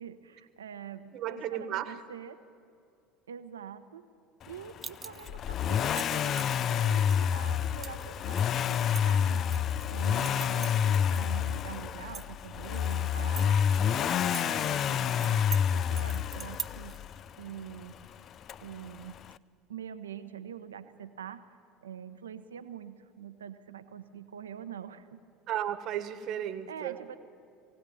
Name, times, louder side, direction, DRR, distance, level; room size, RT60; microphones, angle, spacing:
voice 1, 0.0-2.4 3.3-4.1 4.4-9.5 9.9-17.0 17.4-18.2 18.6-19.2 19.7-21.4 21.8-25.2 26.5-27.2, right 8 dB, 85° right, 10 dB, 1.0 m, -45 dB
voice 2, 1.1-2.0 25.5-26.9, right 11 dB, 55° right, 11 dB, 1.4 m, -34 dB
sound 1, 4.8-5.4 5.8-6.6 7.1-7.2 7.8-8.0 8.4-9.8 10.2-11.3 11.5-11.6 12.0-12.9 13.4-14.4 14.7-14.8 15.2-15.6 16.0-17.0, right 6 dB, 30° right, 0.8 m, -41 dB
Accelerating revving vroom, 5.3-17.2 18.5-18.6, left 8 dB, 45° left, 0.5 m, -28 dB
20.5 x 17.0 x 9.3 m, 2.3 s
hypercardioid pair, 75°, 0 cm